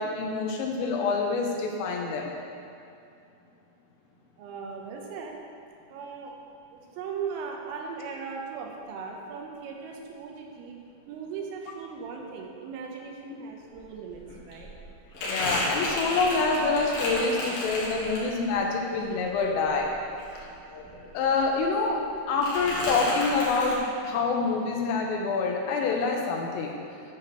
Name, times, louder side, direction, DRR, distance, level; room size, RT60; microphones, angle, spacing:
voice 1, 0.0-2.3 13.3-13.4 15.2-19.9 21.2-22.0 22.3-26.7, left 4 dB, 85° left, 0 dB, 3.6 m, -26 dB
voice 2, 4.4-5.4 5.9-6.4 6.7-10.7 11.1-14.7, right 5 dB, 90° right, 1 dB, 3.5 m, -38 dB
Crumpling crinkling, 13.8-13.9 14.1-18.6 18.9-21.1 21.3-22.1 22.4-23.8, left 1 dB, 55° left, 2.9 m, -32 dB
11.5 x 4.3 x 6.7 m, 2.5 s
omnidirectional pair, 5.7 m